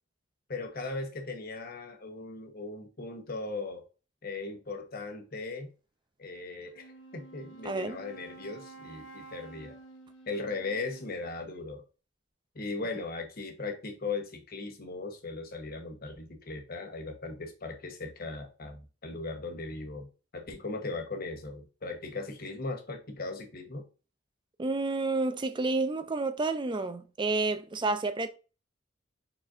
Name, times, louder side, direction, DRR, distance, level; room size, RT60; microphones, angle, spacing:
voice 1, 0.5-3.8 4.2-5.7 6.2-6.9 7.1-9.8 10.3-11.8 12.5-23.8, left 3 dB, 50° left, 1.1 m, -38 dB
Wind instrument woodwind instrument, 6.7-11.6, right 3 dB, 75° left, 1.0 m, -51 dB
voice 2, 7.6-8.0 24.6-28.3, right 3 dB, 25° right, 0.5 m, -30 dB
4.9 x 4.2 x 2.6 m
head